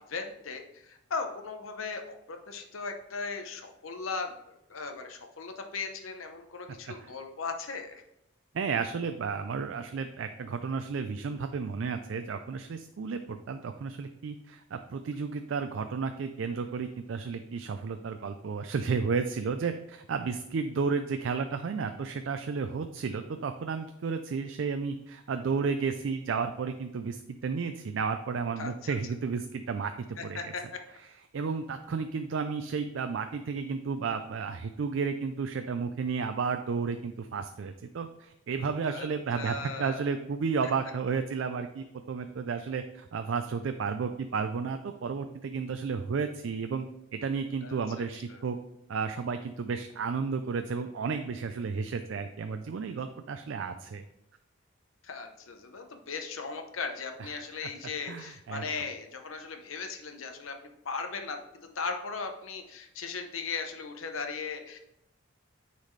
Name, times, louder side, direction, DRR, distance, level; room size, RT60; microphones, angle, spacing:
voice 1, 0.1-2.0 2.3-8.0 28.6-29.0 30.2-30.6 38.9-39.1 39.3-40.0 47.6-47.8 48.3-48.4 55.0-60.6 60.8-64.8, left 4 dB, 85° left, 5 dB, 0.8 m, -37 dB
voice 2, 8.5-30.4 31.3-46.8 47.1-48.6 48.9-54.0 57.2-57.7 58.1-58.6, right 5 dB, 70° right, 7 dB, 0.4 m, -32 dB
9.5 x 4.1 x 3.2 m, 0.84 s
head